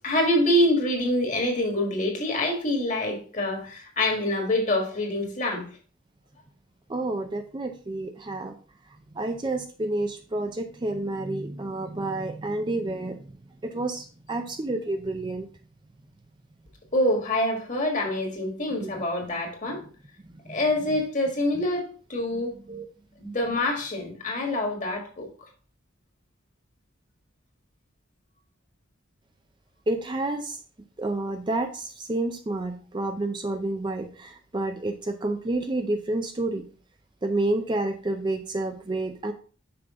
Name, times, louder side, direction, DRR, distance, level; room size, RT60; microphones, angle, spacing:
voice 1, 0.0-5.6 16.9-19.8 20.5-22.5 23.2-25.3, left 1 dB, 40° left, 1.6 m, -26 dB
voice 2, 6.9-8.5 9.2-13.2 13.6-15.5 18.8-19.0 20.5-20.6 22.7-22.8 29.9-30.6 31.0-36.7 37.2-39.3, right 2 dB, 25° right, 0.4 m, -29 dB
6.0 x 4.9 x 3.6 m
head